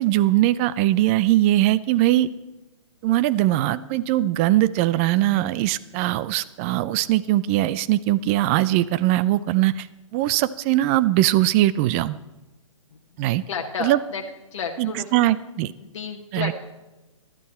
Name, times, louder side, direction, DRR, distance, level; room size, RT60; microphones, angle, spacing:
voice 1, 0.0-2.3 3.0-9.9 10.1-12.2 13.2-13.4 13.8-14.0 14.8-15.7 16.3-16.5, right 15 dB, 25° right, 17 dB, 0.4 m, -21 dB
voice 2, 12.9-14.2 14.5-15.1 15.8-16.5, left 6 dB, 60° left, 3 dB, 1.1 m, -32 dB
14.5 x 11.5 x 4.3 m, 1.1 s
figure-of-eight pair, 130°, 17 cm